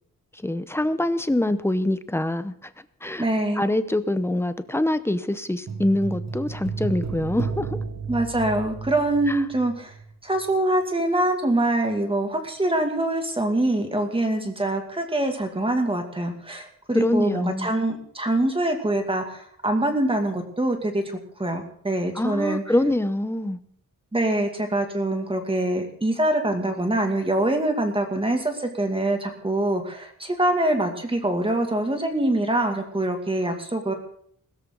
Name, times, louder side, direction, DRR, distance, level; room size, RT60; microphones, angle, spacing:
voice 1, 0.4-2.7 3.0-3.2 3.6-7.7 9.3-9.4 16.9-17.7 22.1-23.6, left 1 dB, 5° left, 12 dB, 0.8 m, -24 dB
voice 2, 3.2-3.7 8.1-9.9 10.2-22.6 24.1-33.9, right 1 dB, 15° right, 4 dB, 2.4 m, -24 dB
sound 1, 5.7-10.1 10.4-10.5, right 4 dB, 50° right, 1.5 m, -32 dB
21.0 x 13.5 x 4.0 m, 0.63 s
wide cardioid pair, 180°, 34 cm